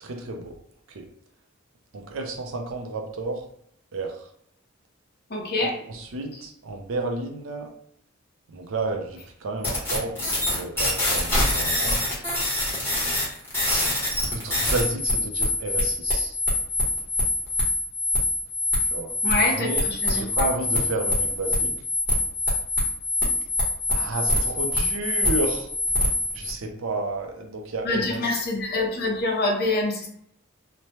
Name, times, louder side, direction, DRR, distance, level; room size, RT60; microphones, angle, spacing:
voice 1, 0.0-0.5 0.9-1.1 1.9-3.4 3.9-4.3 5.6-7.7 8.5-12.0 14.3-16.4 18.9-19.8 20.1-21.7 23.9-25.7 26.3-28.4, right 2 dB, 70° right, 3 dB, 0.5 m, -31 dB
voice 2, 5.3-5.8 19.2-20.5 27.8-30.1, left 2 dB, 50° left, 0 dB, 0.7 m, -25 dB
sound 1, 9.6-26.5, left 1 dB, 10° left, 1.0 m, -25 dB
3.1 x 2.1 x 2.7 m, 0.69 s
head